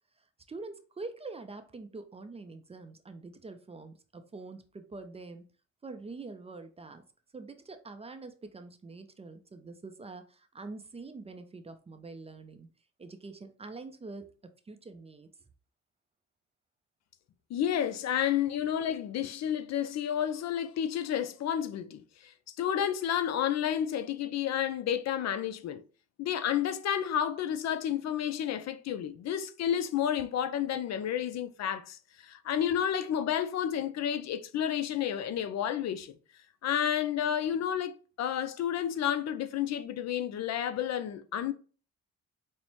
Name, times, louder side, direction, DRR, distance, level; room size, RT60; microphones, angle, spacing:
voice 1, 0.5-5.5 5.8-7.0 7.3-12.7 13.0-14.3 14.7-15.3, right 3 dB, 20° right, 0.4 m, -45 dB
voice 2, 17.5-25.8 26.2-36.2 36.6-41.5, left 9 dB, 60° left, 0.5 m, -31 dB
5.4 x 2.1 x 3.0 m
cardioid pair, 90°, 30 cm